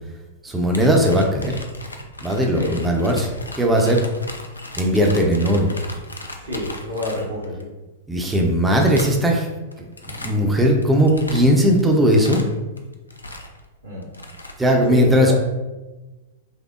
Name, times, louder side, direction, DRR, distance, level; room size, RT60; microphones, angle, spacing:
voice 1, 0.4-1.6 2.2-3.3 3.6-4.0 4.8-5.7 8.1-9.5 9.8-9.9 10.2-12.4 14.6-15.3, equal, 10° right, 1 dB, 0.5 m, -18 dB
sound 1, 0.7-7.6 8.3-8.5 8.8-9.3 9.7-10.5 10.8-13.6 14.0-14.6, left 1 dB, 85° left, 0.4 m, -37 dB
voice 2, 6.4-7.7 13.8-14.1 14.9-15.3, left 1 dB, 70° right, -5 dB, 1.0 m, -28 dB
5.4 x 2.0 x 2.4 m, 1.1 s
figure-of-eight pair, 100°, 0 cm